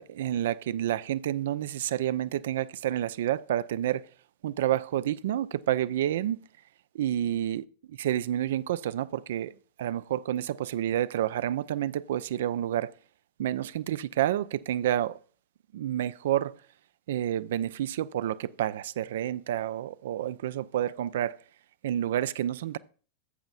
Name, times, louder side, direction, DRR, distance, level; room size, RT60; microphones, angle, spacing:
voice 1, 0.0-4.0 4.4-6.4 6.9-9.5 9.8-12.9 13.4-15.2 15.7-16.5 17.1-21.4 21.8-22.8, right 11 dB, 60° right, 0.3 m, -29 dB
14.0 x 7.8 x 2.4 m
figure-of-eight pair, 90°, 0 cm